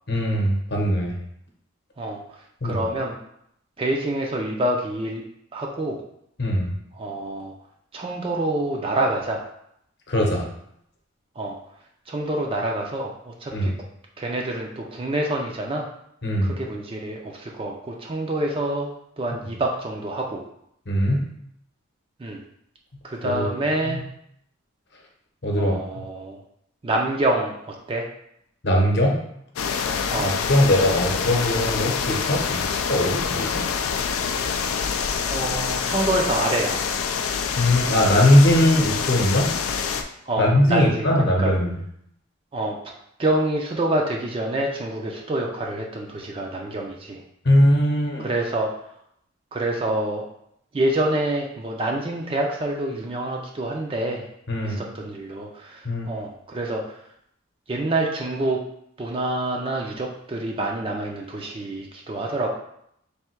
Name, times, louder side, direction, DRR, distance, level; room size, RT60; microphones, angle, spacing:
voice 1, 0.1-1.2 2.6-2.9 6.4-6.7 10.1-10.5 13.5-13.7 16.2-16.5 20.9-21.3 23.2-23.5 23.9-24.0 25.4-25.8 28.6-29.2 30.2-33.7 37.6-39.5 40.4-41.8 47.4-48.3 54.5-54.8 55.8-56.1, left 1 dB, 50° left, 0 dB, 0.8 m, -20 dB
voice 2, 2.0-3.2 3.8-5.2 5.5-6.0 6.9-7.5 7.9-9.5 11.4-11.6 12.1-13.7 14.2-15.9 16.4-18.9 19.2-20.4 22.2-22.4 23.0-24.0 25.5-26.4 26.8-28.1 30.1-30.3 35.2-36.8 40.3-41.5 42.5-42.9 43.2-47.2 48.2-48.7 49.5-50.3 50.7-54.3 54.6-57.0 57.7-58.6 59.0-62.5, right 1 dB, 25° right, 0 dB, 0.4 m, -27 dB
sound 1, 29.6-40.0, left 6 dB, 90° left, 0.4 m, -26 dB
3.4 x 2.7 x 4.4 m, 0.74 s
head